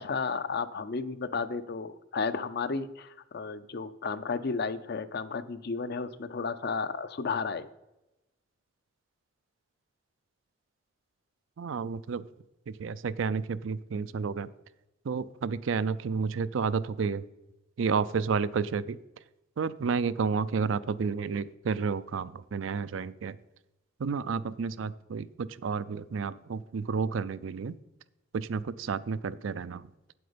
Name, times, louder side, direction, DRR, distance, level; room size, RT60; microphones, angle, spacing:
voice 1, 0.0-7.7, left 4 dB, 55° left, 13 dB, 0.5 m, -33 dB
voice 2, 11.6-12.2 12.7-14.5 15.0-17.2 17.8-19.0 19.6-23.4 24.0-27.8 28.3-29.9, right 5 dB, 75° right, 16 dB, 0.4 m, -31 dB
8.6 x 7.9 x 5.1 m, 0.95 s
head